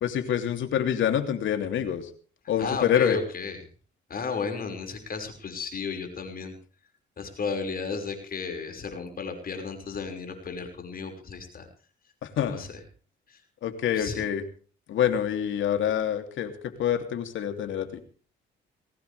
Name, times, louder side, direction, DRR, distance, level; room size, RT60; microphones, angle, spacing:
voice 1, 0.0-2.1 2.5-3.2 12.2-12.7 13.6-14.4 14.9-18.0, left 9 dB, 75° left, 7 dB, 3.0 m, -26 dB
voice 2, 2.6-3.6 4.1-6.5 7.2-11.7 12.4-12.7 13.9-14.2, left 5 dB, 50° left, 5 dB, 5.7 m, -33 dB
21.5 x 18.0 x 3.5 m, 0.41 s
cardioid pair, 90°, 20 cm